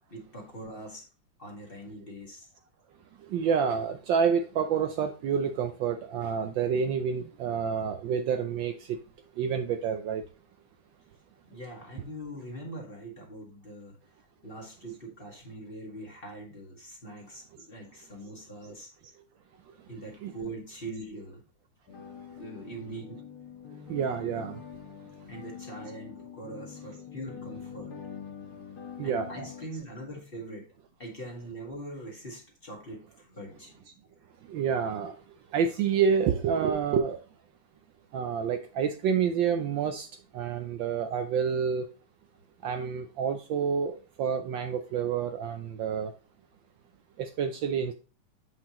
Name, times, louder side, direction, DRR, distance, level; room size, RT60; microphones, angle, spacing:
voice 1, 0.1-1.1 1.4-2.5 11.4-14.0 14.4-18.9 19.9-21.4 22.4-23.2 25.2-28.0 29.0-30.7 31.0-33.9, right 1 dB, 25° left, 1.9 m, -42 dB
voice 2, 3.3-9.0 9.4-10.2 20.2-20.3 23.9-24.6 29.0-29.3 34.5-35.1 35.5-37.2 38.1-40.1 40.3-41.8 42.6-46.1 47.2-47.9, right 7 dB, 70° right, 1.2 m, -28 dB
sound 1, 21.9-29.7, left 7 dB, 75° left, 1.9 m, -44 dB
7.8 x 5.8 x 3.0 m
omnidirectional pair, 2.4 m